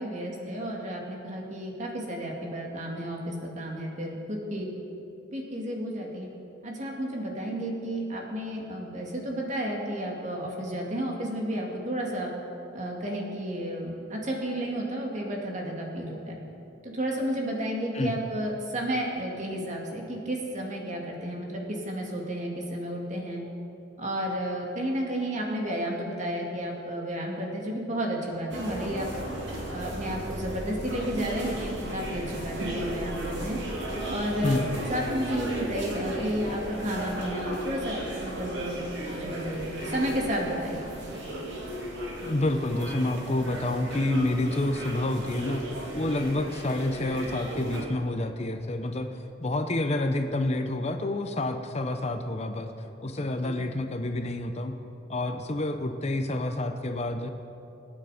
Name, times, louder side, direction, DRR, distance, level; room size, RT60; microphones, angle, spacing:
voice 1, 0.0-4.7 5.3-6.3 6.6-12.3 12.7-16.4 16.8-23.4 24.0-29.1 29.7-33.6 34.1-34.6 34.9-38.8 39.1-41.1 53.4-53.5, equal, 40° right, -1 dB, 2.5 m, -32 dB
sound 1, 28.5-47.8, right 1 dB, 65° right, 2.4 m, -35 dB
voice 2, 42.2-45.7 45.9-52.7 53.0-54.8 55.1-57.3, left 1 dB, 35° left, 7 dB, 0.7 m, -28 dB
25.5 x 9.5 x 5.1 m, 2.9 s
head